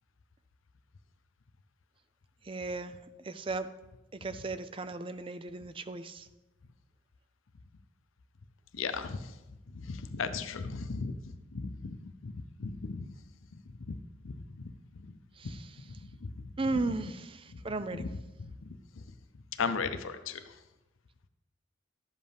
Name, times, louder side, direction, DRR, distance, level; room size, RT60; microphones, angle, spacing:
voice 1, 2.4-3.0 3.2-3.7 4.2-6.3 15.4-15.6 16.6-18.0, right 3 dB, 25° right, 11 dB, 0.4 m, -35 dB
voice 2, 8.7-9.3 9.7-11.2 11.5-13.1 13.9-14.0 14.2-14.4 15.4-15.5 15.9-16.5 17.5-17.6 17.9-18.1 18.4-19.0 19.6-20.6, left 5 dB, 85° left, 10 dB, 0.6 m, -37 dB
12.0 x 7.7 x 3.5 m, 1.0 s
head